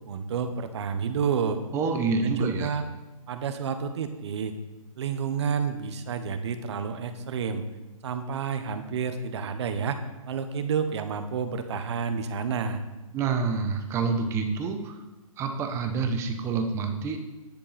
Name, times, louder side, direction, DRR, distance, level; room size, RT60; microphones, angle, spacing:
voice 1, 0.1-1.6 2.2-2.8 3.3-4.5 5.0-7.6 8.0-10.0 10.3-12.8, right 6 dB, 50° right, 9 dB, 1.2 m, -29 dB
voice 2, 1.7-2.8 13.1-15.0 15.4-17.2, right 4 dB, 15° right, 6 dB, 0.9 m, -27 dB
10.5 x 8.6 x 4.3 m, 1.1 s
hypercardioid pair, 155°, 18 cm